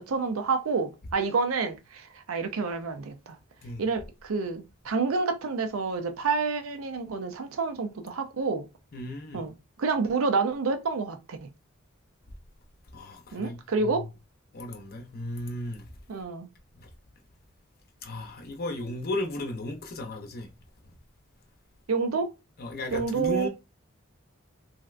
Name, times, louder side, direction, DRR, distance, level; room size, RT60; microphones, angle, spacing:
voice 1, 0.0-3.4 3.8-8.7 9.3-11.5 13.3-14.0 16.1-16.5 21.9-22.3 22.9-23.5, right 4 dB, 80° right, 0.5 m, -28 dB
voice 2, 8.9-9.4 12.9-14.1 14.5-15.8 16.8-16.9 18.0-20.5 22.6-23.5, left 1 dB, 50° left, 0.7 m, -35 dB
3.2 x 2.6 x 2.4 m
head